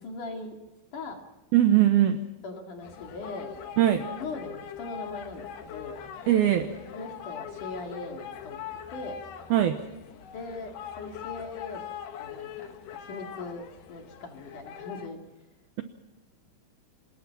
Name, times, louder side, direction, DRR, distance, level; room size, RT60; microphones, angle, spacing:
voice 1, 0.0-0.6 0.9-1.2 2.4-3.5 4.2-6.0 6.9-8.6 8.9-9.2 10.3-11.8 12.2-12.7 13.1-13.6 13.9-15.2, left 3 dB, 50° left, 3 dB, 3.3 m, -39 dB
voice 2, 1.5-2.2 3.8-4.0 6.3-6.7 9.5-9.8, right 12 dB, 85° right, 8 dB, 2.1 m, -20 dB
sound 1, 2.8-15.1, left 9 dB, 65° left, 3.3 m, -42 dB
26.5 x 20.5 x 6.0 m, 1.0 s
omnidirectional pair, 5.7 m